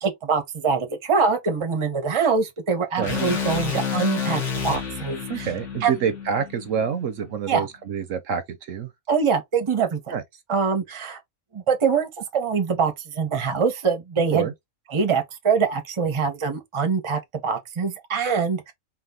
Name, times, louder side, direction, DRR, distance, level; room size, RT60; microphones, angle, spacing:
voice 1, 0.0-5.5 5.8-5.9 7.5-7.7 9.1-10.0 10.5-11.2 11.5-14.5 14.9-18.7, right 5 dB, 25° right, 0.7 m, -24 dB
sound 1, 3.0-7.2, left 6 dB, 55° left, 1.7 m, -29 dB
voice 2, 5.3-8.9 10.1-10.2 14.3-14.5, right 7 dB, 65° right, 0.9 m, -27 dB
4.1 x 2.4 x 3.6 m
omnidirectional pair, 1.5 m